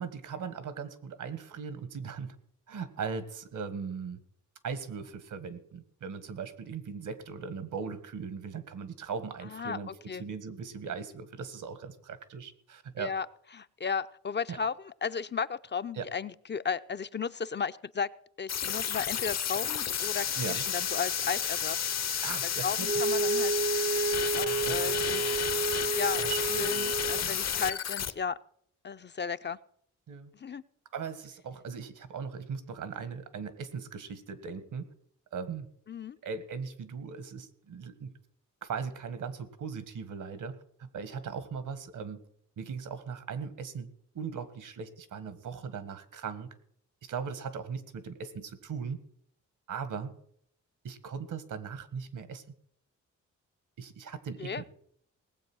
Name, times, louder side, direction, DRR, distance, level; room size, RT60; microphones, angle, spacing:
voice 1, 0.0-2.4 2.7-4.2 4.6-13.1 14.5-14.6 15.9-16.1 20.4-20.7 22.2-22.9 24.6-25.0 26.2-26.7 27.2-27.3 30.1-30.3 30.9-34.9 35.3-35.7 36.2-38.1 38.6-42.2 42.6-46.5 47.0-49.0 49.7-50.1 50.8-52.4 53.8-54.7, right 6 dB, 75° right, 13 dB, 1.8 m, -39 dB
voice 2, 9.5-10.2 13.0-13.3 13.5-18.1 18.4-21.8 22.6-23.5 24.4-25.4 26.0-26.2 26.5-28.4 28.8-29.6 30.3-30.6 35.9-36.2 54.4-54.6, left 6 dB, 35° left, 13 dB, 0.6 m, -34 dB
sound 1, 18.5-28.1, left 8 dB, 55° left, 0.9 m, -31 dB
Wind instrument woodwind instrument, 22.8-27.3, right 4 dB, 35° right, 0.6 m, -31 dB
19.0 x 7.7 x 6.2 m, 0.66 s
cardioid pair, 70°, 31 cm